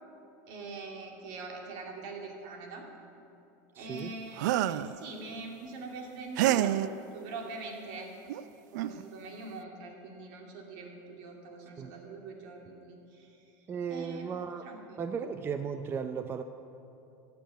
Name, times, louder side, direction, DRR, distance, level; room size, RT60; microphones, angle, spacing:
voice 1, 0.5-2.9 3.8-8.1 8.7-15.2, right 3 dB, 70° right, 1 dB, 2.6 m, -43 dB
voice 2, 3.7-4.1 11.8-11.9 13.7-14.7 15.0-16.4, right 6 dB, 25° right, 9 dB, 0.5 m, -35 dB
sound 1, 4.4-4.9 6.4-6.9 8.3-8.4 8.8-9.0, right 13 dB, 90° right, 0.4 m, -27 dB
14.5 x 6.9 x 9.1 m, 2.7 s
supercardioid pair, 130°, 9 cm